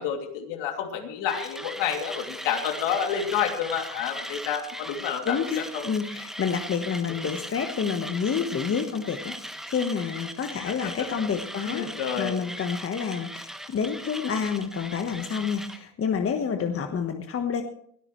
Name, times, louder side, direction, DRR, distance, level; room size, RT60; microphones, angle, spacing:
voice 1, 0.0-5.9 10.7-10.9 11.6-12.4, left 8 dB, 60° left, 4 dB, 2.9 m, -29 dB
Mechanisms, 1.3-15.8, equal, ahead, 1.2 m, -39 dB
voice 2, 5.2-9.4 9.7-11.9 12.2-17.6, left 6 dB, 25° left, 6 dB, 1.3 m, -28 dB
21.0 x 13.0 x 3.2 m, 0.65 s
hypercardioid pair, 90°, 49 cm